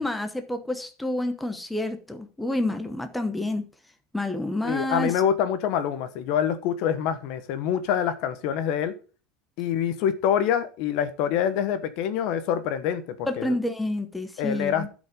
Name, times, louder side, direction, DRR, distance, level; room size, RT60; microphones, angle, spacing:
voice 1, 0.0-3.7 4.1-5.1 13.3-14.9, left 1 dB, 5° left, 0.9 m, -28 dB
voice 2, 4.6-8.9 9.6-13.0 13.4-13.5 14.4-14.9, left 9 dB, 60° left, 1.1 m, -25 dB
12.0 x 5.2 x 5.1 m
cardioid pair, 160°, 0 cm